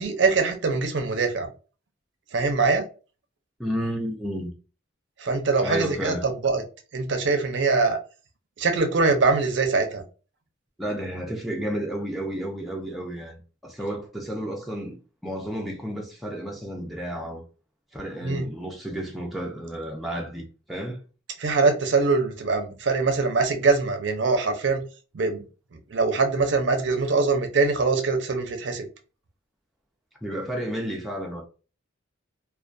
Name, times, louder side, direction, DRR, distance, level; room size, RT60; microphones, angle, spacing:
voice 1, 0.0-1.5 2.3-2.8 5.2-6.6 6.9-8.0 8.6-10.0 18.2-18.5 21.4-24.8 25.1-25.4 25.9-28.9, right 4 dB, 60° right, 0.5 m, -23 dB
voice 2, 3.6-4.5 5.6-6.3 10.8-15.0 15.2-17.4 17.9-21.0 30.2-31.4, right 1 dB, ahead, 0.4 m, -31 dB
2.2 x 2.2 x 2.5 m
head